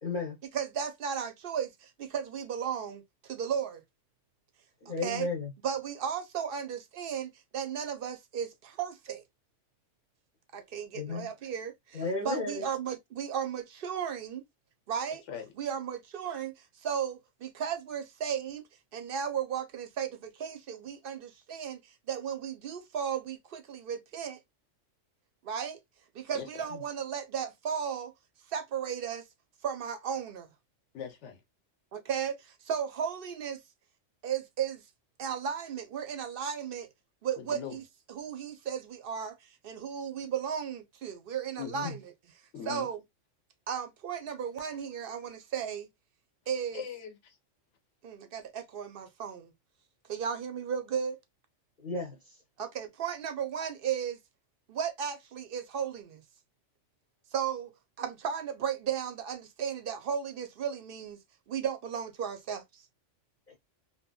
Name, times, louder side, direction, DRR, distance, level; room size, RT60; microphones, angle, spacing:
voice 1, 0.0-0.4 4.8-5.5 10.9-11.3 11.9-12.7 41.8-41.9 51.8-52.2 63.5-63.6, left 3 dB, 45° left, 0.9 m, -33 dB
voice 2, 0.5-3.8 4.9-5.3 5.6-9.2 10.5-14.4 14.9-15.2 15.6-18.7 18.9-24.4 25.4-25.8 26.1-28.1 28.5-29.3 29.6-30.5 31.9-33.6 34.2-34.8 35.2-36.9 37.2-37.8 38.1-42.0 42.7-43.0 43.7-45.9 46.5-46.8 48.0-49.5 50.1-51.2 52.6-54.2 54.7-56.2 57.3-61.2 61.5-62.9, right 8 dB, 60° right, 0.7 m, -35 dB
voice 3, 30.9-31.4 37.4-37.8 41.6-41.9 42.5-42.9 46.7-47.4, left 8 dB, 75° left, 1.0 m, -40 dB
2.8 x 2.7 x 2.2 m
omnidirectional pair, 1.3 m